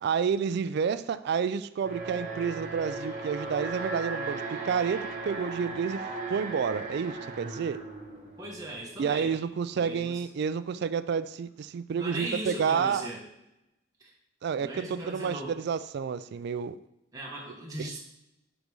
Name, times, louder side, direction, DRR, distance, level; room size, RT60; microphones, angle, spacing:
voice 1, 0.0-7.8 9.0-13.1 14.4-16.8 17.8-17.9, right 6 dB, 60° right, 14 dB, 0.3 m, -30 dB
Alarm, 1.8-8.9, right 3 dB, 40° right, 1.1 m, -37 dB
voice 2, 8.4-9.3 9.7-10.2 11.9-13.2 14.0-14.1 14.6-15.6 17.1-18.0, right 1 dB, 20° right, -3 dB, 0.9 m, -38 dB
5.1 x 4.0 x 4.7 m, 0.88 s
head